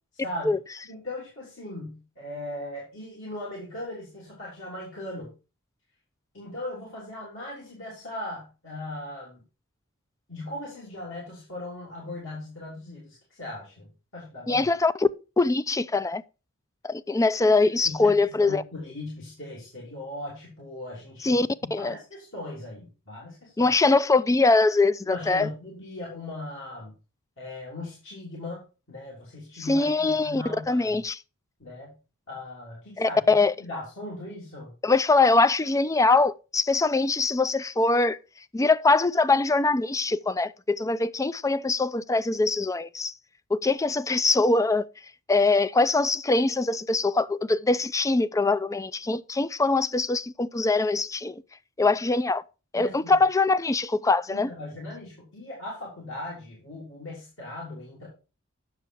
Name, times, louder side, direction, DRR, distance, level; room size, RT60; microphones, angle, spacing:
voice 1, 0.1-0.6 0.8-5.3 6.3-9.4 10.3-14.7 17.8-23.7 25.1-26.9 27.4-28.6 28.9-31.0 31.6-32.0 32.3-33.2 33.6-34.7 52.7-53.1 54.3-58.1, left 1 dB, 60° left, 3.4 m, -38 dB
voice 2, 14.5-14.9 15.4-16.2 16.8-18.6 21.2-21.9 23.6-25.5 29.7-31.2 33.0-33.5 34.8-38.2 38.5-43.1 43.5-44.9 45.3-51.4 51.8-52.4 52.7-54.5, left 3 dB, 15° left, 0.4 m, -23 dB
9.5 x 6.8 x 4.6 m
head